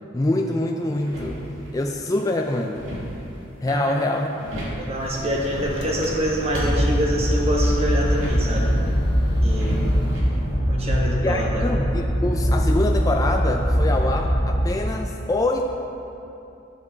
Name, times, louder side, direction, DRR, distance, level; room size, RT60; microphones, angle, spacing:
voice 1, 0.1-1.4 1.7-2.8 3.6-4.3 11.2-15.6, left 2 dB, 15° left, 2 dB, 0.3 m, -25 dB
sound 1, 0.9-1.8 2.2-3.5 4.0-5.1 6.2-8.7 9.5-10.3, equal, 75° right, 1.8 m, -34 dB
voice 2, 3.7-4.1 4.7-8.8 9.4-9.8 10.7-11.7, equal, 30° right, -2 dB, 1.3 m, -26 dB
Microwave oven, 5.0-10.2, left 1 dB, 60° left, 1.2 m, -30 dB
sound 2, 6.5-14.7, equal, 40° left, 1.1 m, -22 dB
12.0 x 5.5 x 4.0 m, 2.9 s
head